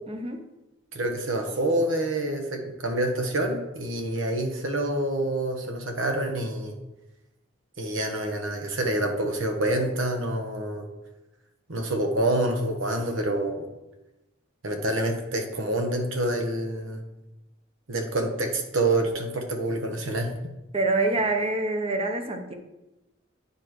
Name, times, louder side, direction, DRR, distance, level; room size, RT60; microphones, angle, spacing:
voice 1, 0.1-0.4 20.7-22.5, right 2 dB, 30° right, 5 dB, 0.8 m, -26 dB
voice 2, 0.9-6.7 7.8-10.9 11.7-13.7 14.6-17.0 17.9-20.3, right 1 dB, 80° right, 4 dB, 1.1 m, -27 dB
9.6 x 4.9 x 3.1 m, 0.98 s
head